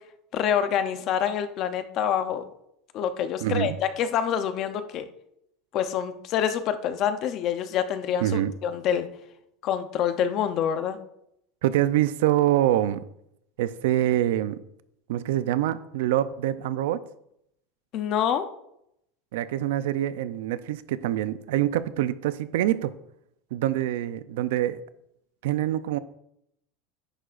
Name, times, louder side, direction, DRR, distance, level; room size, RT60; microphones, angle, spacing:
voice 1, 0.3-2.4 2.9-5.0 5.7-9.1 9.6-11.0 17.9-18.5, left 9 dB, 35° left, 10 dB, 0.7 m, -26 dB
voice 2, 3.4-3.8 8.2-8.5 11.6-13.0 13.6-14.6 15.1-17.0 19.3-22.9 23.5-24.8 25.4-26.0, right 13 dB, 85° right, 14 dB, 0.5 m, -25 dB
10.0 x 10.0 x 2.5 m, 0.77 s
supercardioid pair, 175°, 0 cm